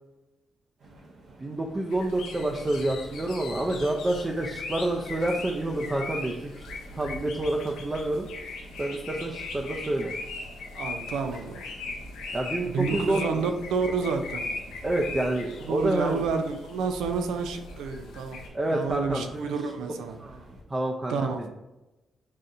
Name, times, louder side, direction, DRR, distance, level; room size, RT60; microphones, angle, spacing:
sound 1, 0.8-20.6, right 2 dB, 65° right, 1.0 m, -49 dB
voice 1, 1.4-6.6 6.9-8.3 8.8-10.1 12.3-13.5 14.8-16.2 18.5-19.6 20.2-20.4 20.7-21.5, right 1 dB, 30° right, 0.5 m, -28 dB
sound 2, 1.9-18.5, left 3 dB, 85° left, 0.6 m, -39 dB
voice 2, 10.7-11.6 12.7-14.4 15.7-18.4 18.7-20.1 21.1-21.4, right 5 dB, 80° right, 0.4 m, -29 dB
5.6 x 2.6 x 2.6 m
supercardioid pair, 50°, 0 cm